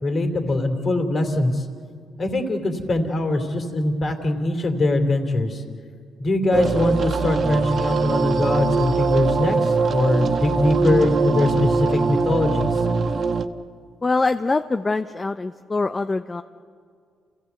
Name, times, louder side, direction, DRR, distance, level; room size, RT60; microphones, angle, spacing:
voice 1, 0.0-1.7 2.2-5.6 6.2-12.8, left 2 dB, 45° left, 5 dB, 3.1 m, -22 dB
sound 1, 6.5-13.4, right 4 dB, 50° right, 1.2 m, -22 dB
voice 2, 14.0-16.4, left 3 dB, 25° left, 8 dB, 0.6 m, -23 dB
28.5 x 16.0 x 8.2 m, 2.1 s
cardioid pair, 90°, 0 cm